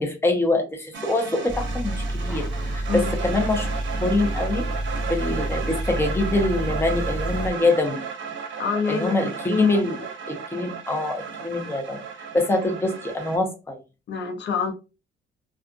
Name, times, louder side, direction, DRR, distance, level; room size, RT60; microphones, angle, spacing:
voice 1, 0.0-3.7 4.0-4.6 5.1-8.0 8.9-10.0 10.3-12.0 12.3-13.8, left 2 dB, 10° left, 2 dB, 0.8 m, -24 dB
sound 1, 0.9-13.4, right 6 dB, 70° right, 0.7 m, -35 dB
sound 2, 1.5-7.5, right 1 dB, 5° right, 0.3 m, -29 dB
voice 2, 8.6-9.2 9.5-9.8 14.1-14.7, left 5 dB, 65° left, 4 dB, 0.7 m, -26 dB
2.5 x 2.4 x 2.4 m, 0.29 s
cardioid pair, 90°, 20 cm